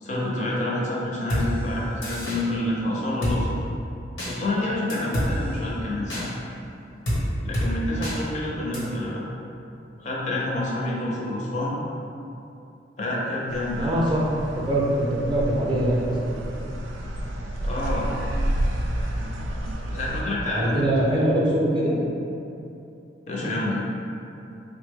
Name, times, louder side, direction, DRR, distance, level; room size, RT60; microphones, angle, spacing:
voice 1, 0.0-3.6 4.2-6.3 7.4-9.2 10.0-11.8 13.0-13.9 17.6-18.1 19.9-20.8 21.1-21.2 23.3-23.8, left 1 dB, 40° left, -5 dB, 0.5 m, -28 dB
Drum kit, 1.3-1.4 2.0-2.4 3.2-3.4 4.2-4.3 4.9-5.3 6.1-6.2 7.1-7.2 7.5-7.7 8.0-8.1 8.7-8.8, equal, 90° left, 1.0 m, -26 dB
voice 2, 8.6-8.9 13.8-14.2 14.6-16.3 20.5-22.0, right 1 dB, 25° right, -5 dB, 0.5 m, -23 dB
sound 1, 13.5-20.2, right 1 dB, 90° right, 0.3 m, -30 dB
3.4 x 2.1 x 3.4 m, 2.8 s
head